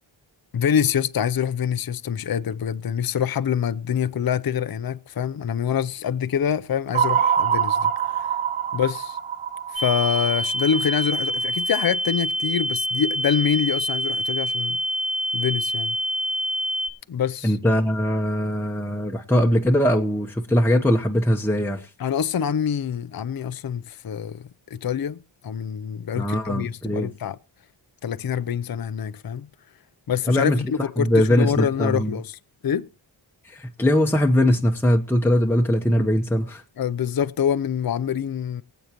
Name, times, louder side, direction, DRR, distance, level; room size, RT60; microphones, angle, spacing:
voice 1, 0.5-8.3 8.7-9.2 9.7-14.8 15.3-16.0 17.1-17.6 22.0-27.4 28.0-29.5 30.1-32.9 36.8-38.6, left 8 dB, 50° left, 0.6 m, -25 dB
sound 1, 6.9-11.2, right 8 dB, 85° right, 0.9 m, -24 dB
sound 2, 9.8-16.9, equal, 50° right, 1.1 m, -26 dB
voice 2, 17.4-21.9 26.2-27.1 30.3-30.6 31.0-32.2 33.4-36.6, left 1 dB, 5° left, 0.9 m, -21 dB
23.5 x 8.1 x 2.9 m
wide cardioid pair, 90°, 47 cm